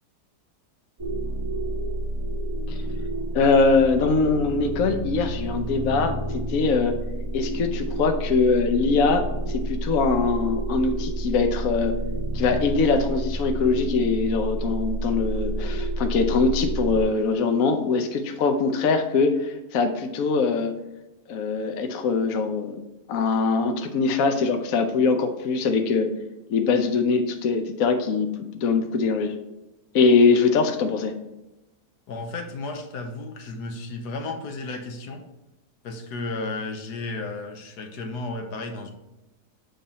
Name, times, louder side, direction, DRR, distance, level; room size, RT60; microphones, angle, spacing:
sound 1, 1.0-17.0, right 1 dB, 15° right, 1.2 m, -29 dB
voice 1, 3.3-6.9 7.3-11.9 12.3-20.7 21.3-22.8 23.1-26.1 26.5-29.3 29.9-31.1, left 4 dB, 65° left, 6 dB, 1.0 m, -22 dB
voice 2, 32.1-35.2 35.8-38.9, left 2 dB, 80° left, 5 dB, 1.4 m, -33 dB
7.1 x 3.8 x 4.1 m, 0.97 s
omnidirectional pair, 1.7 m